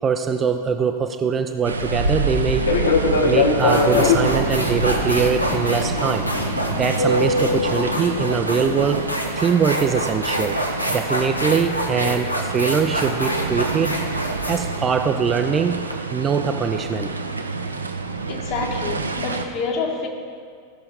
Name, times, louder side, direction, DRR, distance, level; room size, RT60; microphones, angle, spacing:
voice 1, 0.0-2.7 3.2-6.3 6.8-9.1 9.4-10.6 10.9-14.0 14.5-15.8 16.1-17.1, right 6 dB, 20° right, 0.5 m, -22 dB
sound 1, 1.6-19.5, right 3 dB, 80° right, 0.7 m, -28 dB
Fixed-wing aircraft airplane, 2.6-9.0, left 3 dB, 65° left, 1.1 m, -23 dB
sound 2, 3.0-3.2 3.6-15.9, equal, 90° left, 1.0 m, -27 dB
voice 2, 18.3-20.1, left 4 dB, 40° left, 1.6 m, -27 dB
15.5 x 5.8 x 5.1 m
figure-of-eight pair, 90°, 0 cm